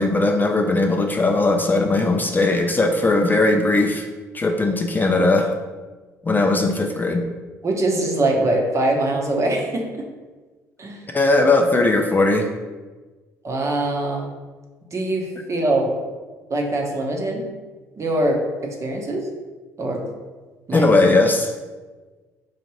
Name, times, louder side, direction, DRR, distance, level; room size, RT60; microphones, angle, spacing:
voice 1, 0.0-4.0 4.3-5.5 6.2-7.2 11.1-12.5 20.7-21.5, left 2 dB, 20° left, 3 dB, 0.4 m, -18 dB
voice 2, 7.6-10.1 10.8-11.0 13.4-14.3 14.9-15.9 16.5-17.4 18.0-19.3 19.8-20.0 20.7-21.0, right 2 dB, 35° right, 1 dB, 0.9 m, -23 dB
4.8 x 2.5 x 3.0 m, 1.3 s
hypercardioid pair, 50°, 8 cm